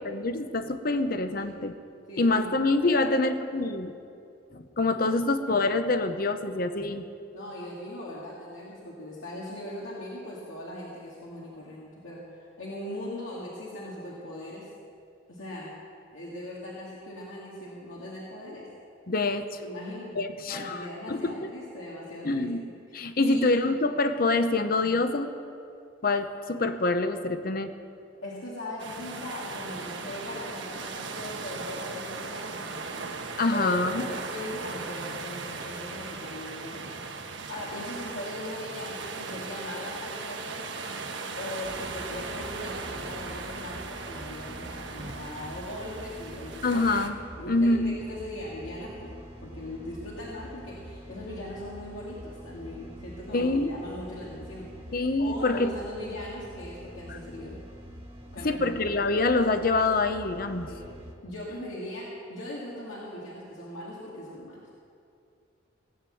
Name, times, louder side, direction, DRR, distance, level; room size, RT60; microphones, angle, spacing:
voice 1, 0.0-1.7 2.2-3.9 4.5-7.1 19.1-19.6 20.1-21.5 22.2-22.6 22.9-25.3 26.0-27.7 33.4-34.0 46.6-47.2 47.5-48.0 53.3-53.7 54.9-55.7 57.1-57.2 58.4-60.7, left 2 dB, 50° left, 9 dB, 0.8 m, -26 dB
voice 2, 2.1-2.5 2.8-3.1 7.3-14.7 15.3-15.8 16.1-18.7 19.6-20.1 20.5-22.5 22.9-23.5 24.8-25.0 28.2-33.1 33.5-37.0 37.5-40.7 41.4-46.6 47.4-49.1 49.4-57.6 58.3-59.0 60.6-60.9 61.2-64.7, left 1 dB, 85° left, -6 dB, 2.2 m, -39 dB
sound 1, 28.8-47.1, right 4 dB, 70° right, 1.3 m, -38 dB
sound 2, 41.6-61.1, equal, 30° right, 1.3 m, -45 dB
18.0 x 8.8 x 7.7 m, 2.5 s
head